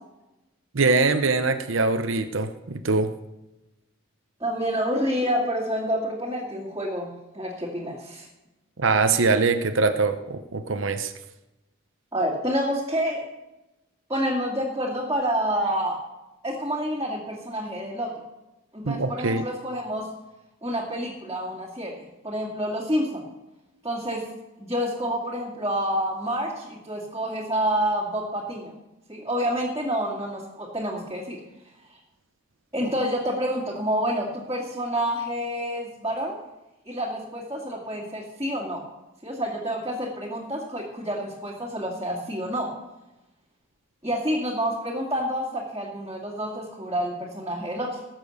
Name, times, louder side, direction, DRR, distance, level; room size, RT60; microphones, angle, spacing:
voice 1, 0.7-3.1 8.8-11.1 18.8-19.4, right 3 dB, 65° right, 8 dB, 0.8 m, -23 dB
voice 2, 4.4-8.3 12.1-13.2 14.1-16.0 16.4-18.1 18.7-20.1 20.6-21.9 22.2-23.2 23.8-24.2 24.6-28.7 29.1-31.4 32.7-36.4 36.9-38.8 39.2-42.7 44.0-48.0, equal, 15° right, -7 dB, 2.4 m, -28 dB
19.0 x 7.6 x 6.6 m, 0.99 s
head